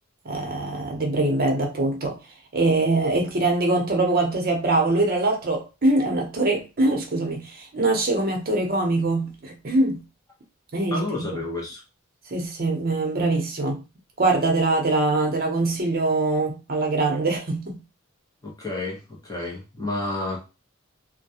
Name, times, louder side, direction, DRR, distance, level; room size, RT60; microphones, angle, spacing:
voice 1, 0.2-2.2 2.5-10.0 10.7-11.3 12.3-13.8 14.2-17.8, right 2 dB, 50° right, 0.7 m, -23 dB
voice 2, 10.9-11.8 18.4-20.4, left 2 dB, 15° left, 0.7 m, -30 dB
2.3 x 2.2 x 2.8 m
head